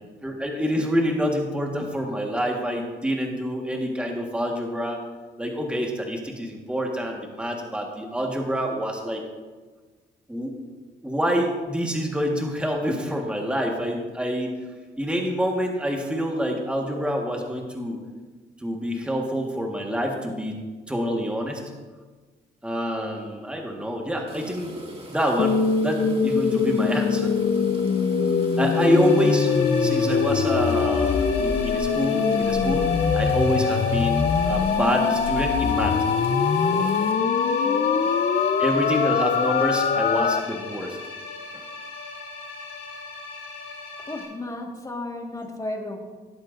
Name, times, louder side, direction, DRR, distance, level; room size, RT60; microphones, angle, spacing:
voice 1, 0.2-5.0 5.4-9.2 10.3-10.5 11.0-14.5 15.0-18.0 18.6-20.6 20.9-21.7 22.6-24.7 25.1-27.4 28.6-29.5 29.8-36.0 38.6-41.0 41.5-41.6, equal, 5° right, 1 dB, 1.5 m, -27 dB
sound 1, 24.3-37.1, right 1 dB, 30° right, 2.2 m, -42 dB
sound 2, 25.4-40.4, left 5 dB, 40° left, 0.7 m, -22 dB
sound 3, 28.5-44.2, left 4 dB, 85° left, 3.5 m, -38 dB
voice 2, 37.4-38.1 44.0-46.0, left 2 dB, 15° left, 2 dB, 1.7 m, -34 dB
18.0 x 8.1 x 2.6 m, 1.4 s
cardioid pair, 90°, 20 cm